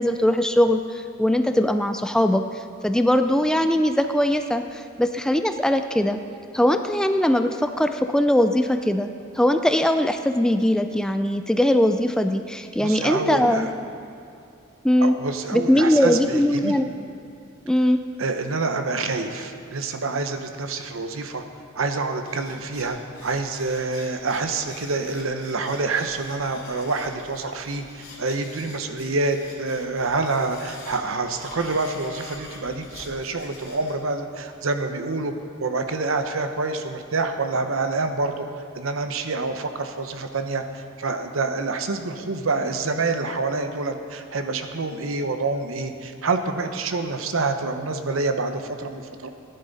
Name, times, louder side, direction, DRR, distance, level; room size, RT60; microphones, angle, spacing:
voice 1, 0.0-2.4 2.8-6.2 6.5-9.1 9.3-13.7 14.8-15.2 15.5-16.9 17.7-18.0, left 1 dB, 5° left, 7 dB, 0.3 m, -20 dB
voice 2, 12.8-13.7 15.0-16.8 18.2-21.4 21.7-35.3 35.6-38.5 38.7-49.3, right 3 dB, 70° right, 7 dB, 0.9 m, -27 dB
sound 1, 22.2-33.9, left 3 dB, 45° left, 3.0 m, -45 dB
15.5 x 10.5 x 4.1 m, 2.6 s
head